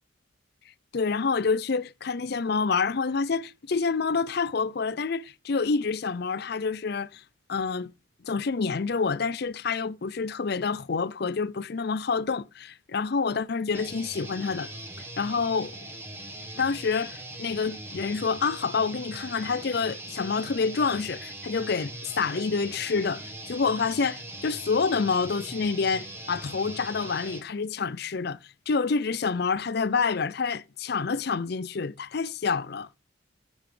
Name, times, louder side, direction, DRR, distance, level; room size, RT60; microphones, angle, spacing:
voice 1, 0.9-7.2 7.5-7.9 8.2-14.7 15.2-15.7 16.6-28.4 28.7-32.9, left 5 dB, 50° left, 0.5 m, -28 dB
sound 1, 13.7-27.4, right 1 dB, 10° right, 1.3 m, -41 dB
10.5 x 7.2 x 3.2 m
head